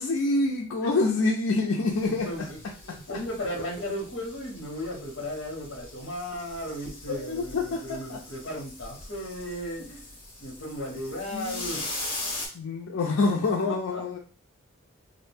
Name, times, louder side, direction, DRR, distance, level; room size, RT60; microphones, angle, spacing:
voice 1, 0.0-2.3 7.1-8.2 11.3-11.7 12.5-14.2, left 3 dB, 85° left, -1 dB, 0.4 m, -26 dB
voice 2, 0.8-1.3 1.6-1.7 2.0-2.6 2.8-10.1 10.4-12.0 13.6-14.0, equal, 65° left, 1 dB, 0.9 m, -36 dB
sound 1, 1.9-12.5, left 2 dB, 30° left, 0.8 m, -41 dB
2.4 x 2.1 x 3.3 m, 0.36 s
head